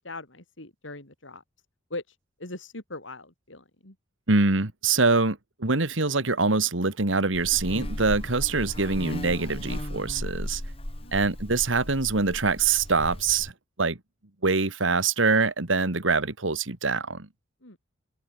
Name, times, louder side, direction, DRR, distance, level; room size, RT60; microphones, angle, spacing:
voice 1, 0.0-1.4 1.9-4.0 11.0-11.2 17.6-17.8, left 2 dB, 85° left, 5.3 m, -41 dB
voice 2, 4.3-10.6 11.1-13.5 13.8-14.0 14.4-17.3, right 4 dB, 90° right, 2.0 m, -24 dB
Buzz, 7.3-13.5, left 1 dB, 30° left, 2.7 m, -36 dB
head